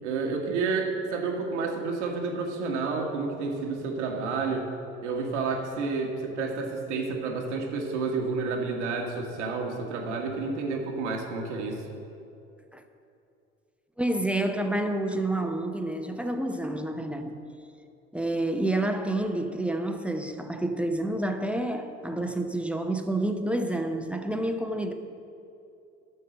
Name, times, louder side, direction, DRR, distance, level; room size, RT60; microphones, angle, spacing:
voice 1, 0.0-4.7 5.0-11.8, right 4 dB, 70° right, 1.6 m, -30 dB
voice 2, 14.0-17.4 18.1-24.9, right 1 dB, 5° right, 0.7 m, -29 dB
11.0 x 6.7 x 6.3 m
figure-of-eight pair, 60°, 36 cm